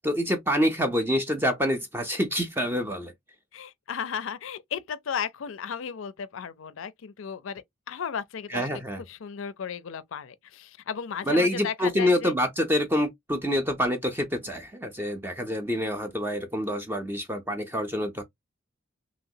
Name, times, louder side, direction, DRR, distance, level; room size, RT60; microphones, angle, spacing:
voice 1, 0.0-3.1 8.5-9.0 11.3-18.2, equal, 10° right, 0.5 m, -26 dB
voice 2, 3.5-8.7 9.1-12.3, left 7 dB, 65° left, 0.4 m, -35 dB
3.0 x 2.9 x 2.7 m
head